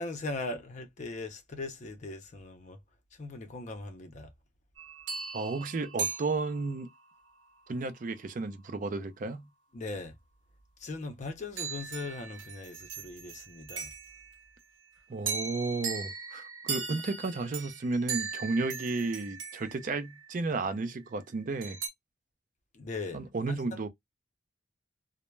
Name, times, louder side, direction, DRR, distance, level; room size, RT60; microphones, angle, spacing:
voice 1, 0.0-2.8 3.1-4.3 9.7-10.2 10.8-13.9 22.7-23.8, left 3 dB, 40° left, 0.5 m, -39 dB
sound 1, 4.8-7.0 11.6-14.4 15.3-20.6 21.6-21.9, right 5 dB, 80° right, 0.7 m, -38 dB
voice 2, 5.3-6.9 7.7-9.5 15.1-21.8 23.1-23.9, right 3 dB, 45° right, 0.4 m, -33 dB
2.1 x 2.0 x 3.0 m
head